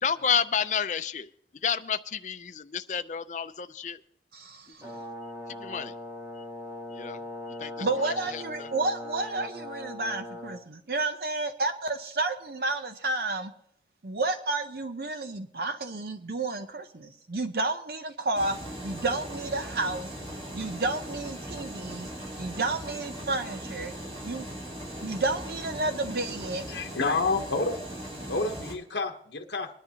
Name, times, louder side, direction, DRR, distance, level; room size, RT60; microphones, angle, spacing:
voice 1, 0.0-1.3 1.6-4.0 4.8-4.9 5.6-5.9 6.9-7.2 7.5-8.7, left 7 dB, 45° left, 0.5 m, -30 dB
voice 2, 4.3-4.9 7.8-13.5 14.0-20.1 20.5-22.1 22.4-23.9 24.2-24.5 25.0-26.6, right 3 dB, 60° right, 0.7 m, -31 dB
Brass instrument, 4.8-10.6, left 1 dB, 20° right, 1.8 m, -40 dB
sound 1, 18.3-28.8, right 1 dB, 35° right, 2.9 m, -39 dB
voice 3, 26.7-27.8 28.3-29.7, left 3 dB, 80° left, 1.0 m, -29 dB
22.5 x 10.5 x 2.8 m
head